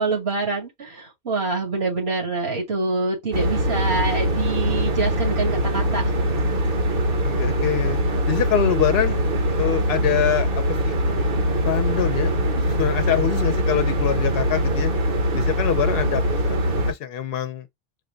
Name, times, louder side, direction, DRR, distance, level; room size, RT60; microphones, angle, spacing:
voice 1, 0.0-6.0, right 3 dB, 85° right, 2.3 m, -25 dB
sound 1, 3.3-16.9, equal, 65° right, 1.1 m, -22 dB
voice 2, 7.2-8.0 8.3-9.2 9.6-11.0 11.6-12.3 12.8-14.9 15.3-16.6 16.9-17.6, left 9 dB, 70° left, 0.8 m, -24 dB
4.9 x 2.2 x 3.7 m
omnidirectional pair, 1.0 m